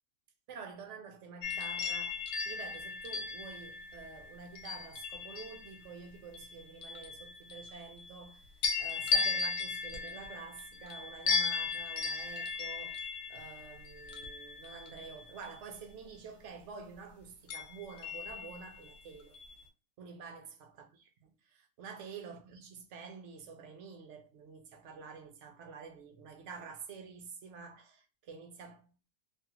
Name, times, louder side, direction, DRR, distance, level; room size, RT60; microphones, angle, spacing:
voice 1, 0.5-8.5 8.8-19.4 20.0-20.9 21.2-28.9, right 5 dB, 65° right, 0.7 m, -48 dB
sound 1, 1.4-5.8 6.3-8.2 8.6-15.6 17.5-18.9 19.3-19.6, left 5 dB, 65° left, 1.0 m, -36 dB
2.7 x 2.3 x 2.8 m
omnidirectional pair, 1.6 m